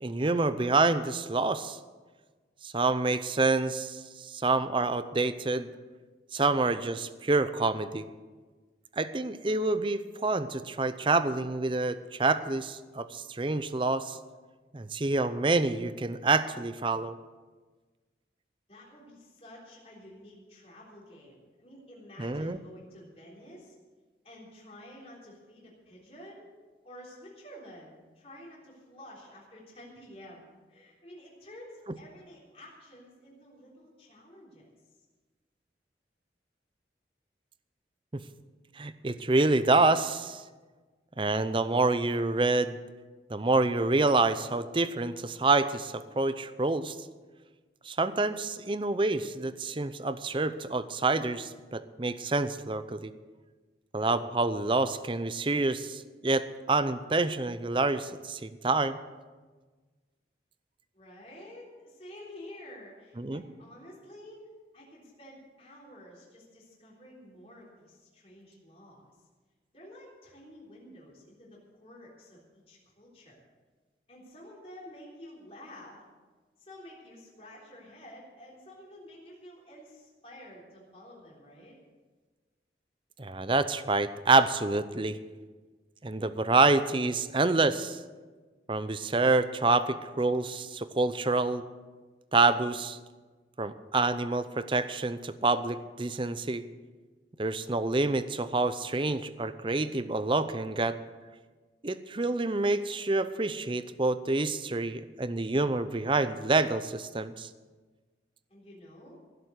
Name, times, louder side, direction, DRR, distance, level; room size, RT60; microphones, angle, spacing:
voice 1, 0.0-1.8 2.6-5.7 6.3-8.0 9.0-14.2 14.7-17.2 22.2-22.6 38.1-38.2 38.8-40.4 41.2-42.8 43.3-46.9 47.9-53.1 53.9-59.0 63.2-63.4 83.2-85.2 86.0-88.0 88.7-91.6 92.3-93.0 93.6-96.6 97.4-101.0 101.8-107.5, right 3 dB, 30° right, 12 dB, 0.6 m, -27 dB
voice 2, 18.7-23.8 24.2-26.5 26.8-34.7 35.0-35.1 60.9-64.5 64.7-69.1 69.7-73.4 74.1-76.0 76.6-81.8 108.5-109.2, left 1 dB, 35° left, -4 dB, 3.7 m, -50 dB
16.0 x 7.9 x 8.0 m, 1.4 s
head